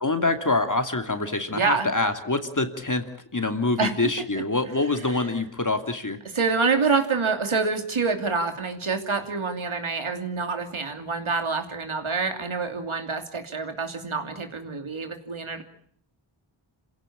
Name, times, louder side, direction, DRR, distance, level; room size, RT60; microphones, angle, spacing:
voice 1, 0.0-3.0 3.3-6.2, left 2 dB, 40° left, 7 dB, 2.7 m, -25 dB
voice 2, 1.5-1.9 3.8-3.9 5.1-5.2 6.3-15.6, right 4 dB, 70° right, 6 dB, 3.0 m, -27 dB
27.0 x 16.5 x 8.7 m, 0.64 s
cardioid pair, 45°, 50 cm